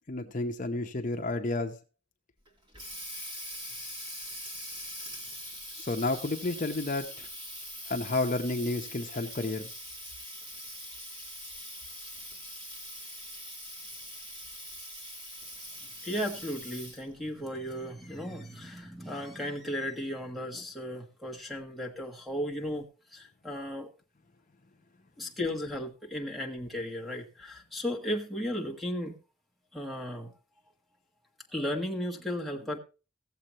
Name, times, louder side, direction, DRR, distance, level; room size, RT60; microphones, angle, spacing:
voice 1, 0.1-1.8 5.7-7.3 7.9-9.7, left 2 dB, 45° left, 4 dB, 0.8 m, -31 dB
Water tap faucet, 2.4-17.1, equal, 25° right, 2.8 m, -43 dB
voice 2, 16.0-23.9 25.2-29.2 29.7-30.3 31.5-32.8, equal, ahead, -1 dB, 1.4 m, -35 dB
16.0 x 7.6 x 3.0 m, 0.32 s
head